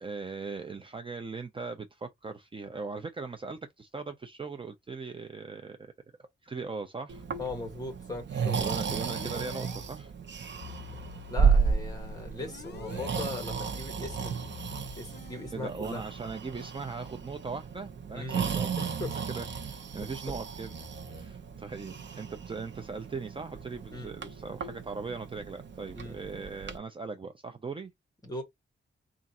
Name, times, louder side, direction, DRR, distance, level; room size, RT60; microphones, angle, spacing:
voice 1, 0.0-5.8 6.4-7.2 8.6-10.1 15.5-18.7 19.3-20.7 21.1-27.9, right 4 dB, 25° right, 0.5 m, -39 dB
Breathing, 7.1-26.8, right 6 dB, 60° right, 0.8 m, -33 dB
voice 2, 7.4-8.6 10.9-11.0 11.3-14.6 15.0-16.0 18.1-18.4 18.8-19.2 20.0-20.1 23.9-24.1 25.9-26.2 28.2-28.4, left 2 dB, 15° left, 1.4 m, -39 dB
sound 1, 8.9-9.8 10.6-13.2 14.0-15.7, left 7 dB, 50° left, 0.6 m, -47 dB
3.5 x 2.5 x 4.1 m
wide cardioid pair, 155°, 21 cm